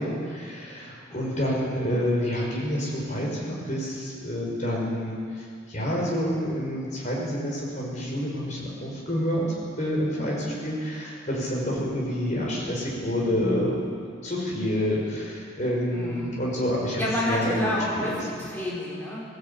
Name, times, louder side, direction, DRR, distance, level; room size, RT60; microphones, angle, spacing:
voice 1, 0.0-9.4 9.8-13.9 14.2-17.7 17.9-18.2, equal, 35° left, -3 dB, 5.7 m, -28 dB
voice 2, 0.8-1.2 10.2-10.5 15.9-16.3 17.0-19.2, equal, 10° left, -7 dB, 4.6 m, -30 dB
17.5 x 17.0 x 8.7 m, 2.3 s
head